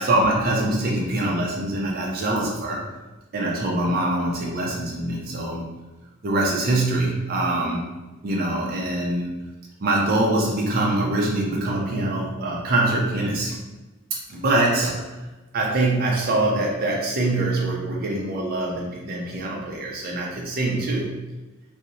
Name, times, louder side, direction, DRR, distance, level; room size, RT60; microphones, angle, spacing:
voice 1, 0.0-2.8 3.3-5.7 6.2-7.9 8.2-9.4 9.8-13.6 14.1-15.1 15.5-21.1, right 2 dB, 40° right, -2 dB, 0.4 m, -24 dB
2.7 x 2.0 x 2.5 m, 1.1 s
head